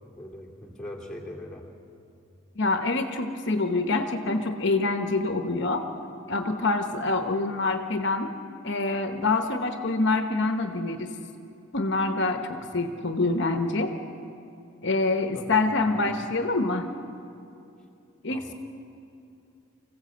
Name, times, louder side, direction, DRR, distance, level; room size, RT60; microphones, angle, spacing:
voice 1, 0.0-1.7 12.9-13.0 15.3-16.2 18.3-18.5, left 1 dB, ahead, -4 dB, 2.8 m, -41 dB
voice 2, 2.6-5.9 6.3-8.3 8.6-11.1 11.7-13.9 14.8-16.9 18.2-18.5, left 3 dB, 60° left, 6 dB, 1.1 m, -26 dB
25.5 x 15.5 x 7.8 m, 2.7 s
head